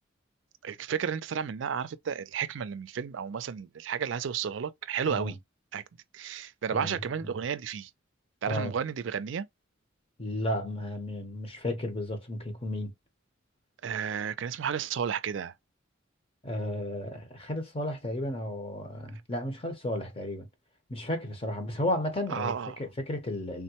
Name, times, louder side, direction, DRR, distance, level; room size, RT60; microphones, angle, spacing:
voice 1, 0.6-5.3 5.7-5.8 6.1-7.9 8.4-9.5 13.8-15.5 22.3-22.8, right 7 dB, 65° right, 0.4 m, -32 dB
voice 2, 6.7-7.3 8.5-8.7 10.2-12.9 16.4-20.5 20.9-22.5 22.8-23.6, left 1 dB, 30° left, 0.9 m, -33 dB
3.6 x 2.1 x 2.8 m
head